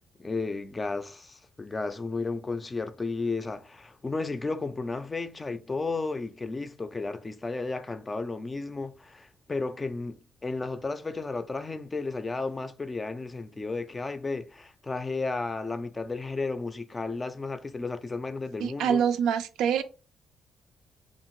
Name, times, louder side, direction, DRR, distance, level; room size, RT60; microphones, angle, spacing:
voice 1, 0.2-19.0, left 3 dB, 25° left, 0.4 m, -33 dB
voice 2, 18.6-19.8, right 8 dB, 85° right, 0.3 m, -25 dB
2.7 x 2.5 x 3.0 m
cardioid pair, 90°, 0 cm